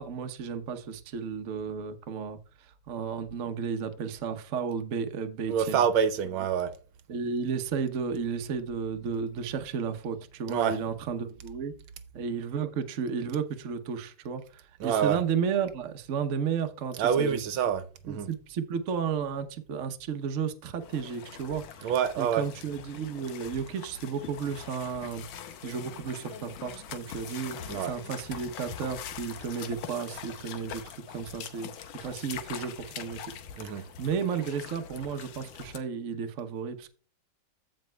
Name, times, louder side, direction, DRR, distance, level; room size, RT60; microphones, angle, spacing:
voice 1, 0.0-5.8 7.1-11.7 12.1-17.4 18.1-25.2 25.6-33.2 33.6-36.9, right 6 dB, 55° right, 0.9 m, -33 dB
voice 2, 5.5-6.7 10.5-10.8 14.8-15.2 17.0-18.3 21.8-22.4 27.7-27.9 33.6-33.8, right 8 dB, 75° right, 1.5 m, -27 dB
sound 1, 20.8-35.8, left 9 dB, 75° left, 1.6 m, -43 dB
15.5 x 5.2 x 2.3 m
omnidirectional pair, 2.4 m